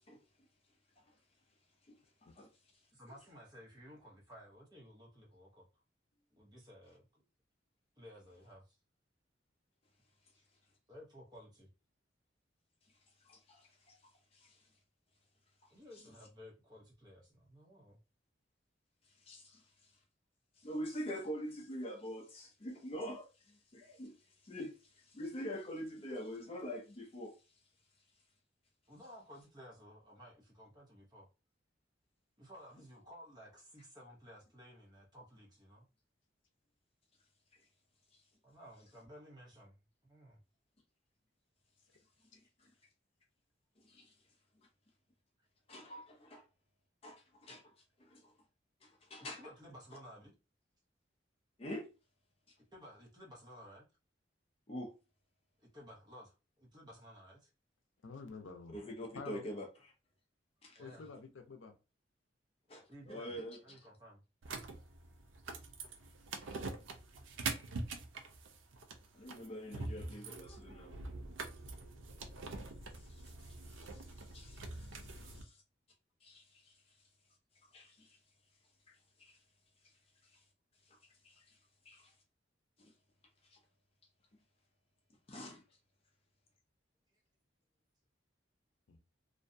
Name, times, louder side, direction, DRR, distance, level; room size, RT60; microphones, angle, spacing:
voice 1, 2.9-5.7 6.3-7.2 8.0-8.8 10.3-10.4 10.9-11.7 15.7-18.0 28.9-31.3 32.4-35.8 38.4-39.7 40.0-40.4 42.4-42.5 49.4-50.3 52.7-53.8 55.6-57.5 60.7-61.1 62.9-64.2 66.2-66.4, equal, 20° right, 0.8 m, -55 dB
voice 2, 13.3-14.0 14.3-14.6 19.3-19.6 20.6-23.3 23.7-24.1 24.4-24.7 25.1-27.4 42.3-42.4 43.8-44.1 45.7-46.4 47.0-47.7 48.0-48.3 48.8-49.4 51.6-51.9 54.7-54.9 58.7-59.7 60.6-60.8 62.7-63.6 69.1-71.0 73.0-74.0 74.3-75.6 76.2-76.7 77.7-78.2 78.9-79.4 80.3-80.4 81.2-81.4 81.9-82.1 82.8-82.9 83.5-83.6 85.3-85.6, equal, 30° left, 0.5 m, -45 dB
voice 3, 58.0-58.8 59.1-59.4 60.8-61.7 88.9-89.0, left 4 dB, 80° left, 0.6 m, -48 dB
sound 1, 64.4-75.4, right 3 dB, 90° right, 0.5 m, -44 dB
2.5 x 2.2 x 2.5 m
head